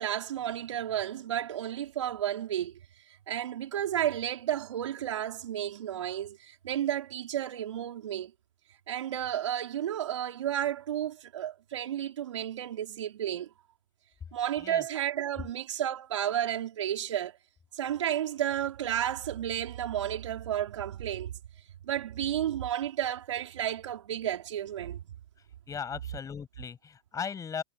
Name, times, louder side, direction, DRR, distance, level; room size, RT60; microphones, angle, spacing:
voice 1, 0.0-2.8 3.3-8.3 8.9-13.5 14.3-17.4 17.7-21.4 21.8-25.1, right 11 dB, 75° right, 4.0 m, -32 dB
voice 2, 25.7-27.6, left 7 dB, 20° left, 7.6 m, -37 dB
hypercardioid pair, 105°, 16 cm